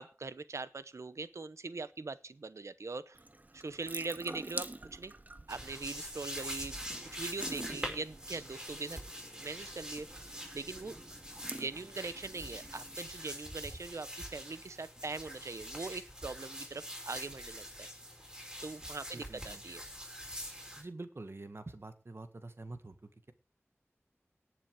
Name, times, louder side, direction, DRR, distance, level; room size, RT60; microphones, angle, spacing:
voice 1, 0.0-3.2 3.5-5.1 5.5-6.8 7.1-9.0 9.4-10.1 10.5-11.0 11.5-17.9 18.6-19.8, right 3 dB, 90° right, 15 dB, 0.8 m, -41 dB
Water tap faucet / Sink (filling or washing) / Drip, 3.1-13.0, right 2 dB, 35° right, 1.0 m, -48 dB
sound 1, 5.5-20.8, equal, 15° right, 5.4 m, -44 dB
voice 2, 19.1-19.6 20.8-23.3, right 2 dB, 55° right, 9 dB, 1.7 m, -46 dB
18.5 x 7.1 x 4.9 m, 0.33 s
wide cardioid pair, 60°, 5 cm